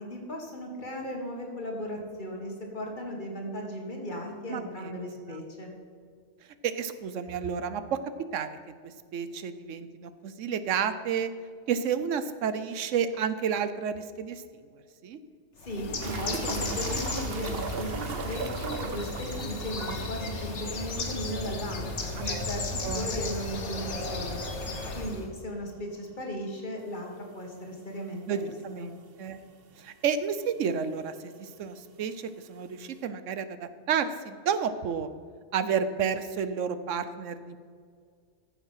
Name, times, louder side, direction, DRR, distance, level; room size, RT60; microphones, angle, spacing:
voice 1, 0.0-5.7 15.6-24.4 24.9-28.9, equal, 40° left, 0 dB, 2.1 m, -36 dB
voice 2, 4.5-4.9 5.3-5.4 6.6-8.0 8.3-8.6 8.8-11.3 11.7-14.4 15.0-15.2 22.2-22.5 22.8-23.1 28.3-28.4 28.6-28.9 29.2-29.4 29.8-35.1 35.5-37.6, right 7 dB, 85° right, 12 dB, 1.1 m, -31 dB
Bird, 15.6-25.3, left 2 dB, 70° left, 1.7 m, -34 dB
sound 1, 16.0-21.4 21.7-21.8 22.1-22.2 25.0-25.1 26.8-26.9 27.7-27.8 28.0-28.1 29.0-29.1 29.2-29.9 30.8-30.9, right 5 dB, 55° right, 1.0 m, -38 dB
14.5 x 7.1 x 5.7 m, 2.1 s
omnidirectional pair, 1.3 m